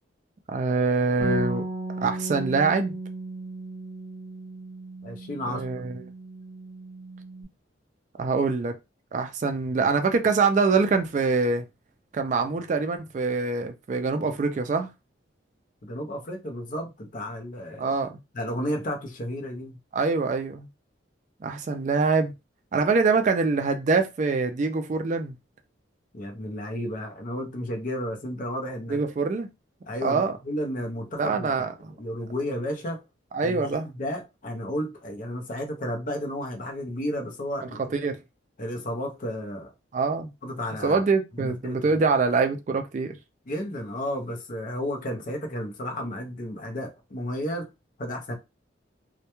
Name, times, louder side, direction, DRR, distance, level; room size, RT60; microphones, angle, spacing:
voice 1, 0.5-1.6 2.0-2.9 5.5-6.0 8.2-8.7 9.1-11.6 12.1-14.9 17.8-18.1 19.9-20.7 21.4-22.3 22.7-25.3 28.9-29.5 30.0-30.3 31.2-31.9 33.3-33.9 37.9-38.2 39.9-40.3 40.8-43.1, right 4 dB, 40° right, 0.3 m, -24 dB
Bass guitar, 1.2-7.4, right 1 dB, 60° left, 0.9 m, -35 dB
voice 2, 5.0-5.6 15.8-17.9 18.3-19.8 26.1-29.0 29.9-31.5 32.0-33.0 33.4-37.9 38.6-39.7 40.4-41.0 41.4-41.9 43.5-47.7 48.0-48.3, equal, 45° left, 0.6 m, -32 dB
2.2 x 2.1 x 2.9 m
head